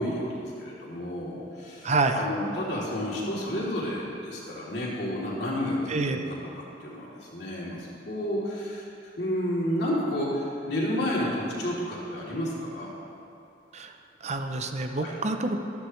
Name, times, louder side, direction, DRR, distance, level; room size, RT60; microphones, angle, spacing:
voice 1, 0.0-6.4 6.8-7.1 7.3-8.8 9.2-12.9 14.9-15.1, equal, 65° left, -6 dB, 3.2 m, -31 dB
voice 2, 1.8-2.2 5.9-6.3 13.7-13.9 14.2-15.6, right 3 dB, 40° right, 6 dB, 0.7 m, -27 dB
14.0 x 13.0 x 3.2 m, 2.8 s
head